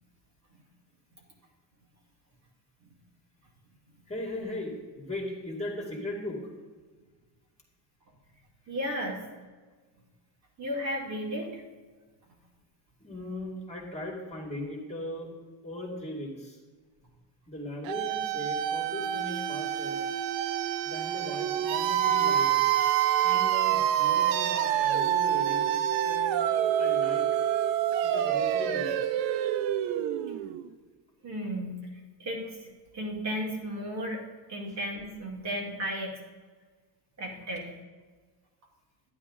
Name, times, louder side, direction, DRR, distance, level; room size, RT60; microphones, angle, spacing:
voice 1, 4.1-6.5 13.0-15.3 15.6-16.6 17.5-20.0 20.8-22.7 23.2-27.3 28.0-29.1 34.7-34.8, left 1 dB, 15° left, -1 dB, 2.2 m, -38 dB
voice 2, 8.7-9.2 10.6-11.6 31.2-31.9 32.2-34.2 34.5-36.2 37.2-37.7, equal, 35° right, -1 dB, 2.2 m, -34 dB
sound 1, 17.9-30.7, right 10 dB, 75° right, 0.8 m, -27 dB
11.5 x 10.0 x 3.6 m, 1.4 s
cardioid pair, 135°, 46 cm